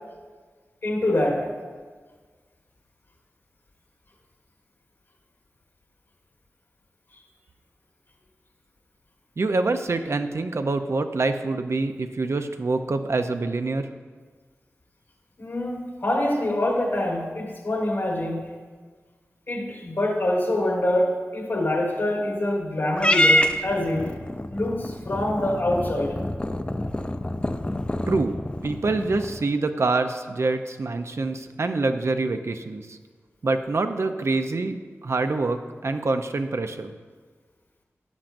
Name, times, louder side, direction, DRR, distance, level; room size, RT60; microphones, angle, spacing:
voice 1, 0.8-1.5 15.4-18.5 19.5-24.1 24.5-26.2, left 1 dB, 60° left, -2 dB, 1.5 m, -25 dB
voice 2, 9.4-13.9 28.1-28.3 28.6-33.0 33.4-34.8 35.0-36.9, right 3 dB, 65° right, 8 dB, 0.7 m, -25 dB
Purr / Meow, 23.0-29.5, left 1 dB, 20° left, 0.6 m, -26 dB
13.5 x 10.0 x 2.6 m, 1.5 s
cardioid pair, 50°, 5 cm